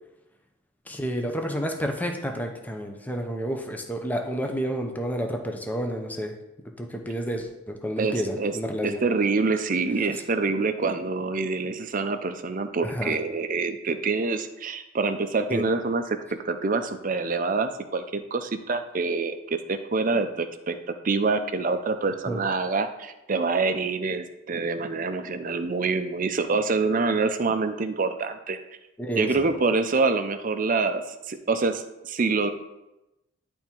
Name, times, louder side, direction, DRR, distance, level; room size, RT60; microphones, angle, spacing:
voice 1, 0.9-6.3 6.8-9.0 12.8-13.1 15.5-15.6 22.3-22.4 29.0-29.5, equal, 10° left, 3 dB, 0.7 m, -30 dB
voice 2, 8.0-8.6 8.8-16.2 16.4-20.8 21.0-28.6 29.2-32.5, right 4 dB, 40° right, 9 dB, 0.5 m, -26 dB
10.5 x 3.5 x 4.4 m, 0.96 s
head